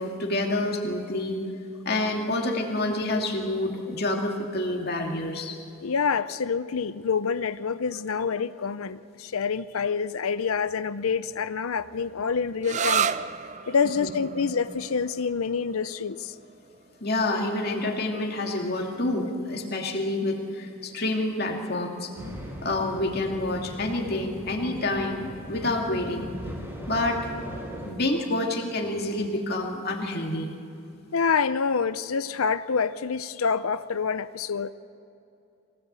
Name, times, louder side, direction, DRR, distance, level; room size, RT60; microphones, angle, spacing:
voice 1, 0.0-1.4 1.8-5.6 17.0-22.1 22.6-26.3 26.9-27.2 27.8-30.5, left 2 dB, 45° left, 1 dB, 2.6 m, -28 dB
voice 2, 5.8-13.1 13.7-16.3 31.1-34.7, left 5 dB, 80° left, 14 dB, 0.6 m, -27 dB
sound 1, 12.6-20.0, right 7 dB, 35° right, 0.5 m, -34 dB
sound 2, 22.1-27.9, equal, 10° right, 3.6 m, -39 dB
23.5 x 17.5 x 8.2 m, 2.7 s
head